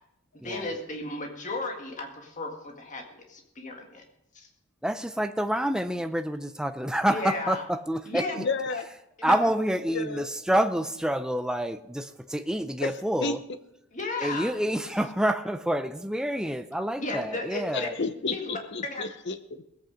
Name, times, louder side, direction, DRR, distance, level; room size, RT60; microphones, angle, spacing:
voice 1, 0.4-4.0 4.3-4.5 7.1-7.6 8.1-8.4 8.7-8.8 9.2-9.4 13.9-14.5 17.0-17.9 18.3-19.0, left 2 dB, 35° left, 1.8 m, -34 dB
voice 2, 4.8-8.4 9.2-13.4 14.2-17.9, right 1 dB, 5° right, 0.5 m, -28 dB
voice 3, 8.4-8.8 9.9-10.2 12.8-12.9 13.2-13.3 17.7-19.6, left 4 dB, 50° left, 0.8 m, -31 dB
19.0 x 8.5 x 5.1 m
head